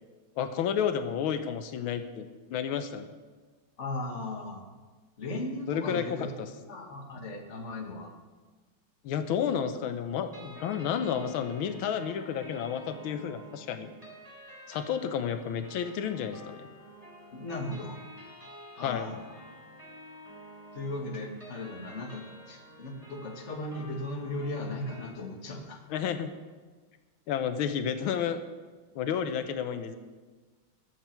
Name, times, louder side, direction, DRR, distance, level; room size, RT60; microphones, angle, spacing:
voice 1, 0.4-3.1 5.7-6.5 9.0-13.9 14.7-16.7 18.8-19.2 25.9-26.3 27.3-28.4 28.9-30.0, left 8 dB, 90° left, 9 dB, 1.6 m, -31 dB
voice 2, 3.8-4.6 5.2-6.3 6.7-8.1 17.3-18.0 18.8-19.4 20.7-25.8, left 2 dB, 35° left, 2 dB, 1.7 m, -37 dB
sound 1, 10.3-25.1, equal, 15° right, 3.4 m, -50 dB
20.5 x 7.5 x 4.5 m, 1.3 s
omnidirectional pair, 2.2 m